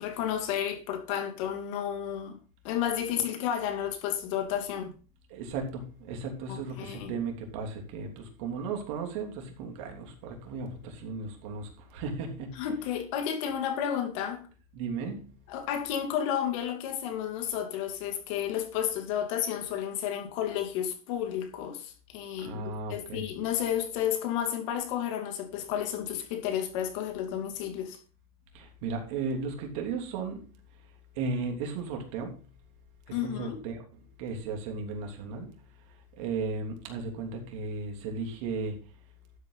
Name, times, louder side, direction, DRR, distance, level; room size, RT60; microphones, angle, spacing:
voice 1, 0.0-2.4 2.6-4.9 6.5-7.1 12.6-14.4 15.5-28.0 33.1-33.6, left 9 dB, 60° left, 2.7 m, -32 dB
voice 2, 5.3-12.7 14.7-15.2 22.4-23.3 28.5-30.4 31.1-32.3 33.2-35.5 36.2-38.8, right 4 dB, 60° right, 3.3 m, -35 dB
12.5 x 8.1 x 4.0 m
supercardioid pair, 150°, 19 cm